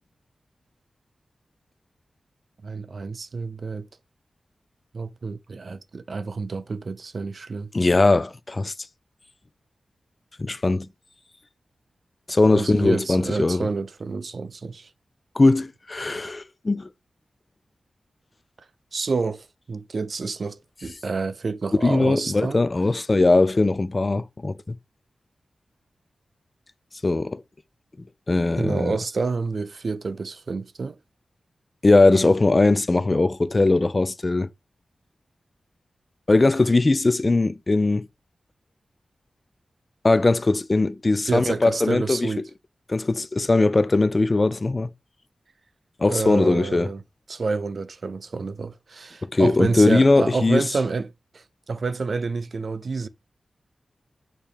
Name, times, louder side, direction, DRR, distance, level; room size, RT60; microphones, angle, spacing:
voice 1, 2.6-3.9 4.9-7.7 12.5-14.9 18.9-22.6 28.6-31.0 41.3-42.4 46.1-47.0 47.3-53.1, right 4 dB, 55° right, 0.4 m, -28 dB
voice 2, 7.7-8.7 10.4-10.9 12.3-13.7 15.4-16.9 21.8-24.7 27.0-27.4 28.3-29.0 31.8-34.5 36.3-38.1 40.0-42.3 42.9-44.9 46.0-46.9 49.2-50.6, left 2 dB, 30° left, 0.4 m, -20 dB
6.7 x 2.9 x 5.2 m
wide cardioid pair, 125°, 0 cm